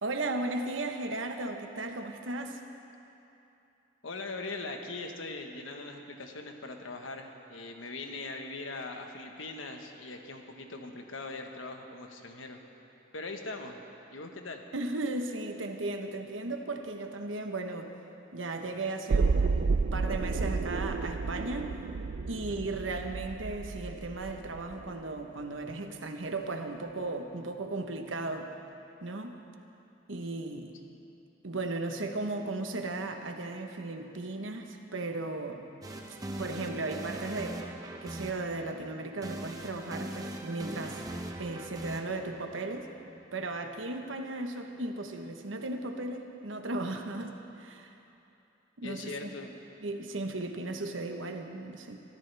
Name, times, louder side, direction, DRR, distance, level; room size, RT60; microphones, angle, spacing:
voice 1, 0.0-2.6 14.7-17.9 18.3-21.8 22.3-28.5 29.0-29.4 30.1-30.8 31.4-35.7 36.1-37.6 38.0-41.0 41.4-42.9 43.3-48.0 48.8-49.3 49.8-52.0, right 2 dB, 85° right, 5 dB, 1.1 m, -36 dB
voice 2, 4.0-12.6 13.1-13.8 14.1-14.6 22.6-22.7 48.8-49.5, left 3 dB, 90° left, 4 dB, 1.3 m, -41 dB
sound 1, 19.1-25.1 25.4-25.5, right 4 dB, 60° right, 0.4 m, -31 dB
sound 2, 35.8-43.7, right 1 dB, 20° right, 0.8 m, -41 dB
23.0 x 13.5 x 3.4 m, 2.9 s
head